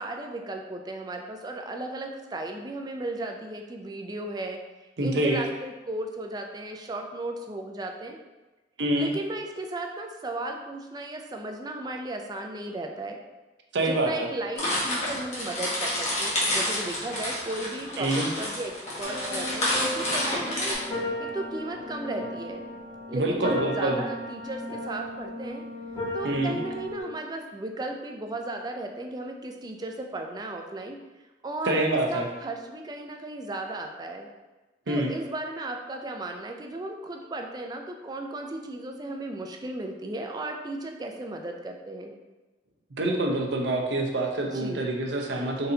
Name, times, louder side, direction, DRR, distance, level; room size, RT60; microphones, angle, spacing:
voice 1, 0.0-4.6 5.0-8.2 8.9-13.2 13.8-18.7 19.0-20.8 21.2-22.6 23.1-25.6 26.1-31.0 31.4-31.8 32.1-34.3 34.9-42.2 44.5-44.9, right 2 dB, 20° right, 3 dB, 0.4 m, -35 dB
voice 2, 5.0-5.4 8.8-9.1 13.7-14.3 18.0-18.3 23.1-24.0 26.2-26.6 31.7-32.3 34.9-35.1 43.0-45.7, right 1 dB, 80° right, 1 dB, 0.7 m, -26 dB
sound 1, 14.6-20.7, left 1 dB, 40° left, 1.2 m, -29 dB
sound 2, 19.0-27.0, left 1 dB, 25° left, 1.5 m, -35 dB
4.1 x 3.9 x 2.7 m, 1.1 s
head